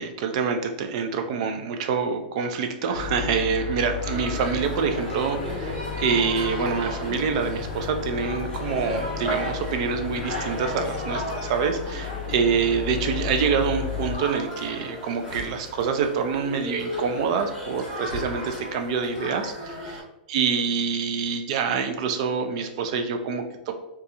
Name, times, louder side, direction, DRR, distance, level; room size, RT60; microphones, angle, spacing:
voice 1, 0.0-20.0 20.3-23.7, right 6 dB, 40° right, 6 dB, 0.4 m, -26 dB
sound 1, 2.9-14.1, left 6 dB, 50° left, 0.8 m, -33 dB
sound 2, 4.0-20.0, equal, 10° right, 1.4 m, -35 dB
4.1 x 2.3 x 2.7 m, 0.89 s
supercardioid pair, 170°, 5 cm